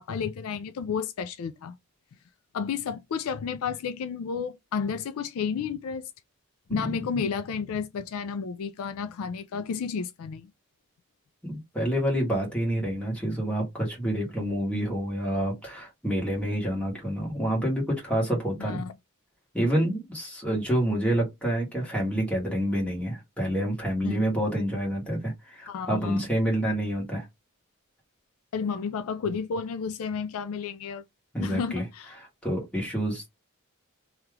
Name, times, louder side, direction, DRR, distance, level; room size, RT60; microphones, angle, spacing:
voice 1, 0.0-1.8 2.5-6.1 6.7-10.5 18.6-18.9 24.0-24.3 25.7-26.2 28.5-31.0 31.4-32.1, left 6 dB, 70° left, 0.3 m, -32 dB
voice 2, 11.4-18.8 19.5-27.2 31.3-31.8 32.4-33.3, equal, 5° left, 1.3 m, -28 dB
2.9 x 2.4 x 3.2 m
head